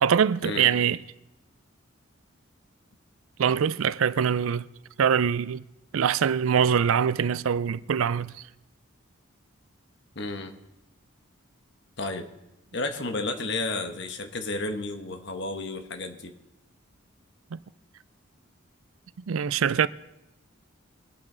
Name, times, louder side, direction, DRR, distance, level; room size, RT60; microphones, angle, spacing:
voice 1, 0.0-1.0 3.4-4.7 5.0-5.6 5.9-8.3 17.5-17.6 19.3-19.9, right 7 dB, 80° right, 0.4 m, -23 dB
voice 2, 10.1-10.5 12.0-12.3 12.7-16.3, left 2 dB, 55° left, 1.2 m, -32 dB
23.5 x 8.8 x 3.9 m
head